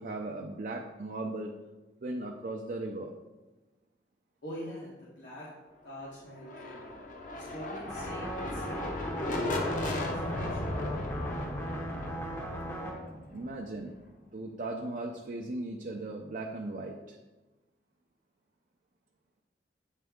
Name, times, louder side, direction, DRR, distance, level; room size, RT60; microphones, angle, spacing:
voice 1, 0.0-1.5 2.0-3.1 13.3-14.0 14.3-17.2, right 2 dB, 45° right, 1 dB, 0.5 m, -37 dB
voice 2, 4.4-5.5 5.8-6.9 7.3-9.7 9.9-10.8, equal, 80° left, -7 dB, 1.3 m, -45 dB
sound 1, 6.3-14.1, left 2 dB, 45° left, 0.7 m, -36 dB
sound 2, 7.9-12.9, equal, 15° left, 0.7 m, -37 dB
8.2 x 3.4 x 3.6 m, 1.1 s
head